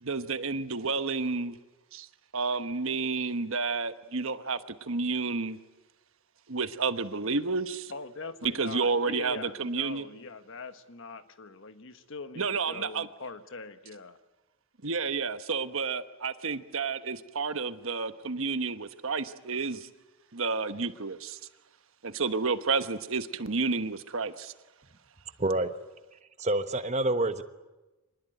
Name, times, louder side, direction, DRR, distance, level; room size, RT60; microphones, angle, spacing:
voice 1, 0.0-1.6 1.9-2.1 2.3-5.6 6.5-7.9 8.4-10.1 12.4-13.1 14.8-19.9 20.3-21.4 22.0-24.5, right 4 dB, 60° right, 10 dB, 1.2 m, -30 dB
voice 2, 7.9-14.2, left 3 dB, 60° left, 10 dB, 1.3 m, -43 dB
voice 3, 25.4-25.7 26.4-27.4, right 2 dB, 30° right, 10 dB, 1.2 m, -27 dB
25.5 x 20.0 x 9.2 m, 1.1 s
head